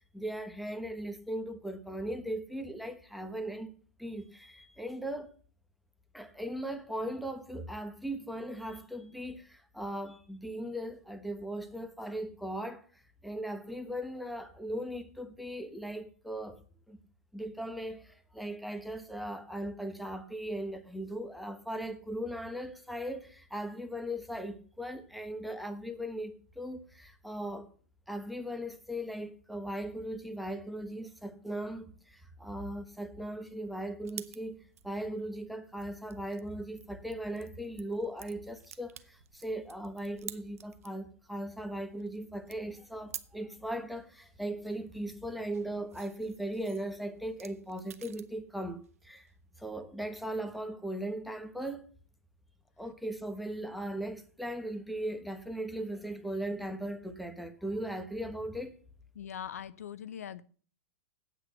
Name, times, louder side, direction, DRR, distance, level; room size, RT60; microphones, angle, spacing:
voice 1, 0.0-3.7 4.0-5.3 6.1-16.6 16.9-17.0 17.3-27.7 28.1-34.6 34.8-49.3 49.6-51.9 52.8-58.7, right 1 dB, ahead, 1.2 m, -38 dB
sound 1, 34.0-41.1 41.4-43.4 43.8-48.4 48.7-49.7, right 9 dB, 75° right, 0.7 m, -51 dB
voice 2, 59.1-60.4, left 9 dB, 75° left, 0.6 m, -41 dB
8.6 x 6.1 x 7.5 m
hypercardioid pair, 105°, 8 cm